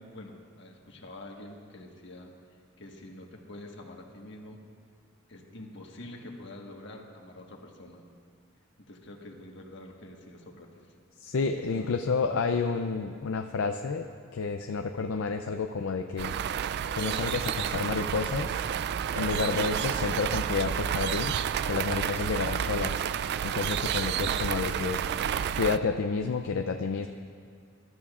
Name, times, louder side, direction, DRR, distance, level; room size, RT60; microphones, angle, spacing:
voice 1, 0.0-2.3 2.8-4.6 5.3-8.0 8.9-10.9 11.7-12.0, left 1 dB, 60° left, 1 dB, 1.4 m, -46 dB
voice 2, 11.2-14.1 14.3-16.3 16.9-18.6 19.1-21.4 21.7-23.0 23.4-25.2 25.5-27.1, left 4 dB, 80° left, 6 dB, 0.5 m, -30 dB
sound 1, 16.2-25.8, right 8 dB, 55° right, 0.3 m, -30 dB
22.5 x 12.5 x 2.4 m, 2.2 s
head